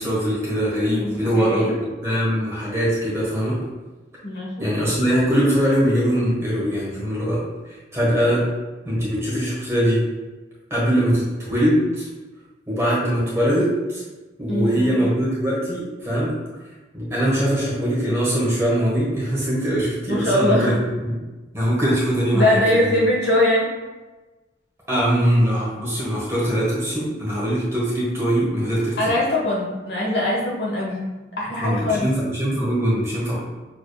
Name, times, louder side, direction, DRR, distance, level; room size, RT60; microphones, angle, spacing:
voice 1, 0.0-3.6 4.6-7.4 7.9-8.4 8.8-10.0 10.7-12.1 12.7-14.0 14.4-16.3 16.9-20.7 21.0-21.2 21.5-23.0 24.9-29.1 31.6-33.4, equal, 15° right, -7 dB, 1.4 m, -22 dB
voice 2, 1.0-1.8 4.2-4.7 14.5-14.9 20.1-20.8 22.3-23.7 29.0-32.1, left 1 dB, 60° left, -4 dB, 1.2 m, -22 dB
6.6 x 3.5 x 2.3 m, 1.2 s
head